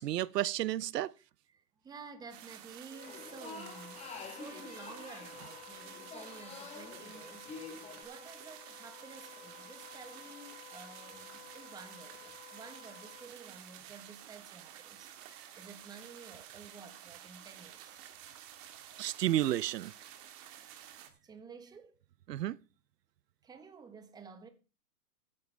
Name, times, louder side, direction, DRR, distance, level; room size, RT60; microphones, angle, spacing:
voice 1, 0.0-1.1 19.0-19.9 22.3-22.6, right 13 dB, 85° right, 0.7 m, -31 dB
voice 2, 1.2-18.0 21.2-22.0 23.4-24.5, right 5 dB, 10° right, 1.1 m, -52 dB
sound 1, 2.3-21.1, right 10 dB, 30° right, 1.8 m, -51 dB
Wind instrument woodwind instrument, 2.9-13.3, left 13 dB, 40° left, 1.1 m, -54 dB
sound 2, 3.0-8.0, left 4 dB, 15° left, 1.4 m, -48 dB
15.0 x 9.6 x 3.3 m
hypercardioid pair, 145°, 47 cm